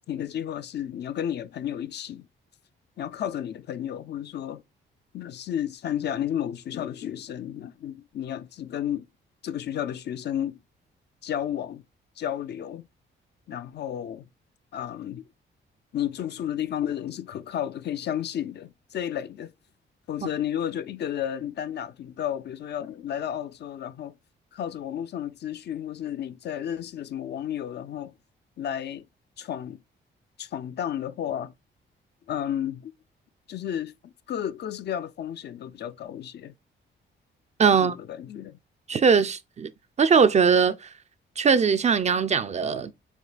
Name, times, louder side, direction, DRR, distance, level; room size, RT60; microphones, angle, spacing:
voice 1, 0.1-2.3 3.0-4.6 5.1-9.0 9.4-10.6 11.2-11.8 12.2-12.9 13.5-14.3 14.7-15.2 15.9-19.5 20.1-24.1 24.5-28.1 28.6-29.1 29.4-29.8 30.4-31.5 32.3-32.9 33.5-36.5 37.7-38.6, left 10 dB, 55° left, 0.4 m, -32 dB
voice 2, 37.6-37.9 38.9-39.7 40.0-40.8 41.4-42.9, right 6 dB, 35° right, 0.4 m, -20 dB
7.2 x 3.2 x 2.2 m
cardioid pair, 105°, 21 cm